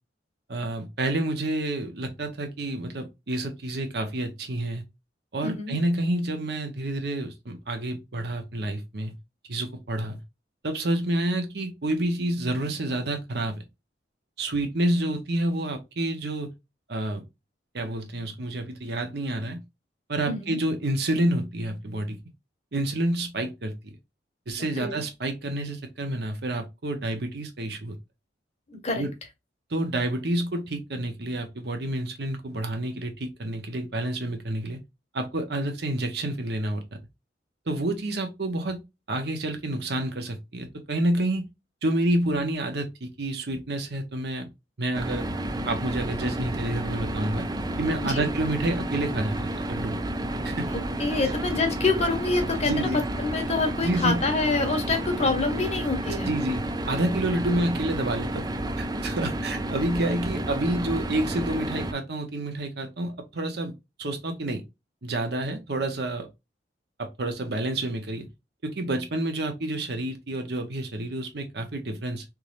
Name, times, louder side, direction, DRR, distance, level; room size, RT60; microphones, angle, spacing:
voice 1, 0.5-4.8 5.3-9.2 9.5-10.2 10.6-13.6 14.4-16.5 16.9-17.2 17.7-19.6 20.1-22.2 22.7-23.9 24.5-28.0 29.0-29.1 29.7-34.8 35.1-37.0 37.7-38.8 39.1-41.4 41.8-44.5 44.8-45.2 45.6-47.5 47.8-50.0 50.4-50.7 51.2-51.3 52.7-53.0 53.8-54.2 56.1-58.5 58.8-63.7 64.0-64.6 65.0-66.3 67.0-68.3 68.6-72.2, right 1 dB, 65° right, 0.9 m, -29 dB
voice 2, 5.4-5.8 20.3-20.6 24.8-25.0 28.7-29.1 48.0-48.3 50.7-52.9 53.2-56.3, left 3 dB, 35° left, 1.0 m, -27 dB
sound 1, 44.9-61.9, right 1 dB, 20° right, 0.4 m, -31 dB
3.6 x 3.1 x 2.5 m
head